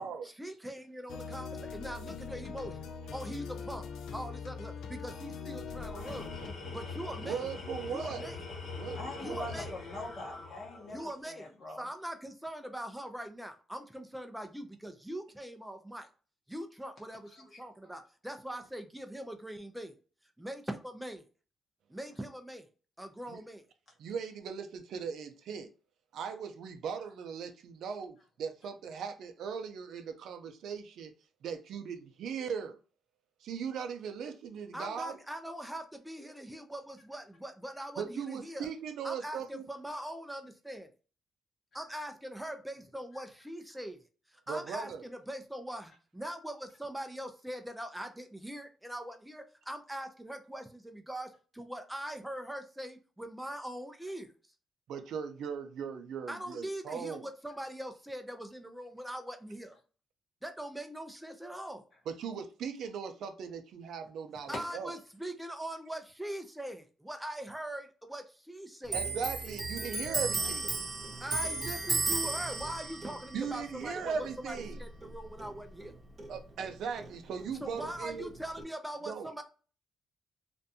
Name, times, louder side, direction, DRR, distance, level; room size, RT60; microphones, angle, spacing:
voice 1, 0.4-3.8 4.1-6.3 6.7-7.5 7.9-8.4 9.2-9.7 10.9-11.5 11.8-16.1 16.5-19.9 20.4-21.2 21.9-22.7 23.0-23.6 34.7-38.7 39.0-40.9 41.7-44.0 44.3-54.3 56.3-59.8 60.4-61.8 64.5-69.0 71.2-75.9 77.6-79.4, right 1 dB, 5° right, 0.3 m, -42 dB
sound 1, 1.1-6.5, left 5 dB, 90° left, 0.3 m, -42 dB
Tools, 5.8-11.1, left 4 dB, 60° left, 1.0 m, -43 dB
voice 2, 7.2-8.3 8.7-9.6 23.3-23.4 24.0-25.7 26.1-31.1 31.4-32.8 33.4-35.2 38.0-39.6 44.5-45.0 54.9-57.3 62.1-64.9 68.9-70.7 73.0-74.8 76.3-78.3 79.0-79.3, right 6 dB, 75° right, 0.4 m, -39 dB
voice 3, 9.0-11.9 17.3-17.9 64.3-64.6, left 1 dB, 40° left, 0.7 m, -44 dB
Clock, 68.9-75.9 76.2-77.5 77.8-78.6, right 3 dB, 30° right, 0.7 m, -35 dB
2.5 x 2.2 x 2.6 m
cardioid pair, 120°, 0 cm